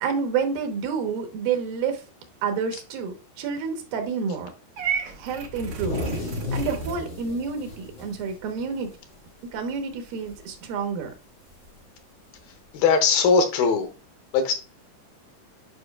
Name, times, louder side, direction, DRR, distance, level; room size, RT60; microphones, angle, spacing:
voice 1, 0.0-2.0 2.4-4.5 5.2-6.0 6.5-8.9 9.5-11.1, right 6 dB, 85° right, 2.9 m, -29 dB
Purr / Meow, 4.8-7.0, right 6 dB, 65° right, 1.5 m, -32 dB
sound 1, 5.5-9.2 9.5-9.7 10.0-10.5 11.6-11.7 12.8-12.9, left 2 dB, 25° left, 2.2 m, -33 dB
voice 2, 12.7-13.9 14.3-14.5, left 5 dB, 90° left, 2.8 m, -20 dB
9.4 x 4.8 x 2.3 m
omnidirectional pair, 4.1 m